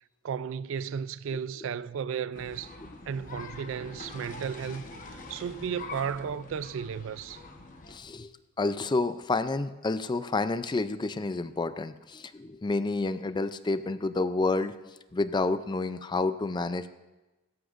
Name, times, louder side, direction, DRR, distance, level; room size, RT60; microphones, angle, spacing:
voice 1, 0.2-2.7 3.1-7.4, right 7 dB, 70° right, 0.3 m, -34 dB
sound 1, 2.3-8.0, left 3 dB, 40° left, 1.1 m, -44 dB
voice 2, 7.9-8.3 8.6-14.7 15.1-16.9, left 3 dB, 20° left, 0.4 m, -29 dB
16.5 x 14.0 x 2.5 m
head